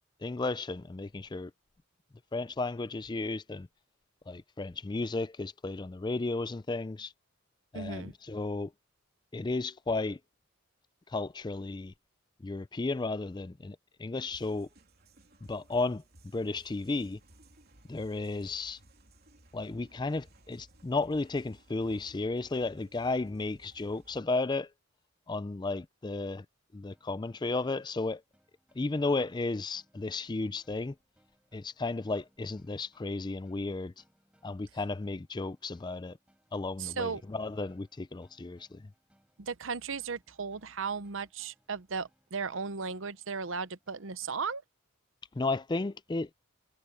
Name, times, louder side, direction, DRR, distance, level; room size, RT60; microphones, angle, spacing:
voice 1, 0.2-1.5 2.3-3.7 4.3-7.1 7.7-8.7 9.3-10.2 11.1-11.9 12.4-14.7 15.5-16.0 16.3-17.2 17.9-18.8 19.5-24.7 25.3-26.5 26.7-28.2 28.8-30.9 31.5-34.0 34.4-36.2 36.5-38.9 45.3-46.3, left 3 dB, 20° left, 0.4 m, -33 dB
voice 2, 7.7-8.1 36.8-37.2 39.4-44.6, right 5 dB, 65° right, 0.8 m, -36 dB
sound 1, 14.2-24.2, right 1 dB, 45° right, 3.7 m, -59 dB
sound 2, 26.9-44.4, equal, 5° right, 5.4 m, -71 dB
head